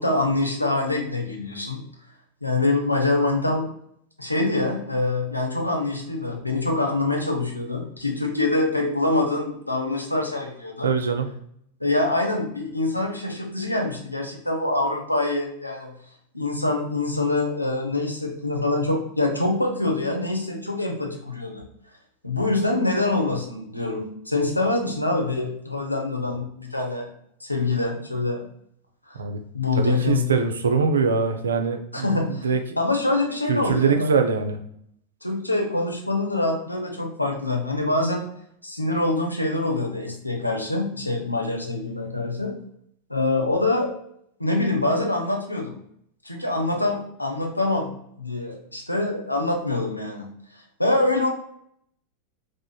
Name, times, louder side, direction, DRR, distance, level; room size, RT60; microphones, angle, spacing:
voice 1, 0.0-1.8 2.4-3.7 4.2-10.9 11.8-15.9 16.3-21.6 22.2-27.1 27.4-28.5 29.1-29.2 29.5-30.3 31.9-32.5 32.8-34.1 35.2-38.3 38.6-42.5 43.1-43.9 44.4-45.7 46.2-47.9 48.2-50.3 50.8-51.3, left 2 dB, 85° left, 2 dB, 0.5 m, -25 dB
voice 2, 10.8-11.3 29.2-29.4 29.8-32.6 33.5-34.6, right 5 dB, 70° right, 6 dB, 0.4 m, -23 dB
3.6 x 2.5 x 2.2 m, 0.70 s
figure-of-eight pair, 90°, 0 cm